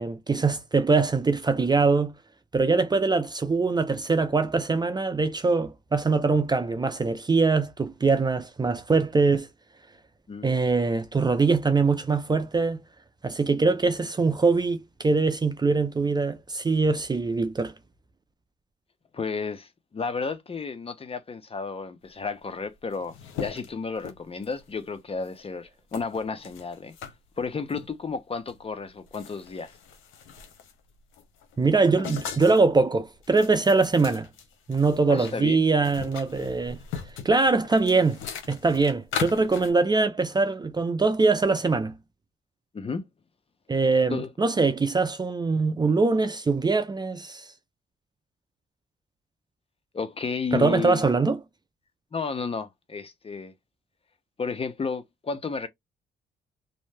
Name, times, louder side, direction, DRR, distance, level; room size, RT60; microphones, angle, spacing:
voice 1, 0.0-2.1 2.5-9.5 10.4-12.8 13.2-17.7 31.6-34.3 34.7-36.8 37.2-38.2 38.5-41.9 43.7-47.5 50.5-51.4, right 4 dB, 20° right, 0.5 m, -23 dB
voice 2, 19.1-26.9 27.4-29.7 35.1-35.6 42.7-43.0 44.1-44.3 49.9-51.1 52.1-53.5 54.4-55.7, left 4 dB, 30° left, 0.6 m, -32 dB
sound 1, 22.5-22.6 22.7-24.7 25.2-25.4 25.9-27.1 27.7-27.9 28.5-28.6 28.9-30.8 31.1-32.7 33.2-35.4 35.6-39.7, left 7 dB, 90° left, 0.8 m, -39 dB
2.6 x 2.1 x 3.2 m
cardioid pair, 90°, 20 cm